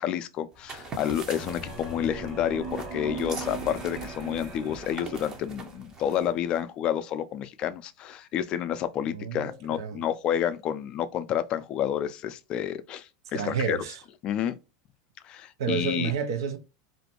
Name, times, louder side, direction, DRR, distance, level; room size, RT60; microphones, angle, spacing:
voice 1, 0.0-13.8 14.2-14.6 15.2-16.1, left 10 dB, 45° left, 0.3 m, -30 dB
sound 1, 0.5-6.6, right 4 dB, 35° right, 0.7 m, -43 dB
sound 2, 1.3-5.9, right 2 dB, 60° right, 1.0 m, -38 dB
voice 2, 9.1-9.5 9.8-10.0 13.3-14.0 15.6-16.6, right 7 dB, 80° right, 0.5 m, -30 dB
2.5 x 2.1 x 2.8 m
hypercardioid pair, 100°, 2 cm